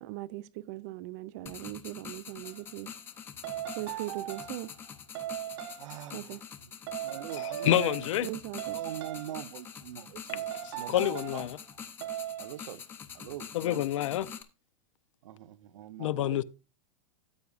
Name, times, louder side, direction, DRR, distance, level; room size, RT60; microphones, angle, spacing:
voice 1, 0.0-2.9 3.8-4.7 6.1-6.4 8.2-8.8, right 17 dB, 30° right, 0.4 m, -39 dB
sound 1, 1.5-14.4, left 7 dB, 15° left, 0.5 m, -46 dB
sound 2, 2.4-2.6 3.4-4.7 5.1-5.9 6.9-8.3 8.6-9.5 10.3-11.5 12.0-12.6, right 12 dB, 55° right, 1.0 m, -38 dB
voice 2, 5.8-6.7 7.0-8.1 8.7-10.5 10.7-11.5 12.4-12.8 13.1-13.8 15.2-16.4, right 12 dB, 75° right, 0.7 m, -43 dB
voice 3, 7.4-8.3 10.6-11.6 13.5-14.3 16.0-16.4, left 13 dB, 75° left, 0.6 m, -28 dB
13.5 x 8.2 x 2.4 m
supercardioid pair, 175°, 16 cm